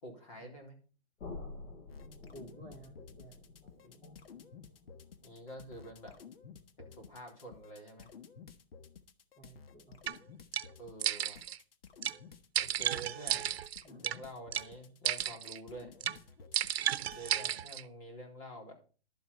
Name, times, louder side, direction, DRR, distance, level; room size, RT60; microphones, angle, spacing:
voice 1, 0.0-0.7 3.8-4.0 5.2-6.1 6.8-8.1 10.8-11.4 12.6-13.5 13.9-15.9 17.1-18.7, right 1 dB, 35° left, 1 dB, 3.9 m, -48 dB
sound 1, 1.2-7.1, left 3 dB, 90° left, 6.7 m, -51 dB
sound 2, 1.9-17.3, left 6 dB, 70° left, 1.4 m, -54 dB
voice 2, 2.3-3.4 9.4-10.4 13.3-13.4 13.8-14.2, right 2 dB, 10° left, 0 dB, 1.3 m, -54 dB
sound 3, 10.1-10.2 10.5-10.7 11.0-11.6 12.0-12.2 12.6-14.2 14.5-14.7 15.1-15.6 16.0-16.2 16.5-17.8, right 10 dB, 85° right, 0.8 m, -33 dB
11.5 x 7.9 x 5.6 m, 0.37 s
hypercardioid pair, 180°, 30 cm